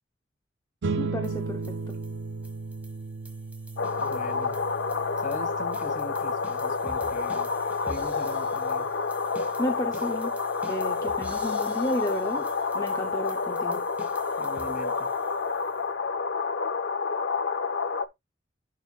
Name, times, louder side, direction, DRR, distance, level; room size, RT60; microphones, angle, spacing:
sound 1, 0.8-11.6, right 4 dB, 60° right, 0.5 m, -38 dB
voice 1, 1.0-2.0 9.6-10.3 10.7-12.5 12.7-13.8, left 1 dB, 20° left, 0.7 m, -32 dB
sound 2, 1.2-15.8, right 1 dB, 10° right, 1.5 m, -48 dB
sound 3, 3.8-18.1, left 4 dB, 65° left, 0.6 m, -29 dB
voice 2, 4.0-4.6 5.2-7.6 7.9-8.9 14.4-15.1, left 2 dB, 40° left, 2.4 m, -41 dB
11.0 x 5.4 x 2.4 m
head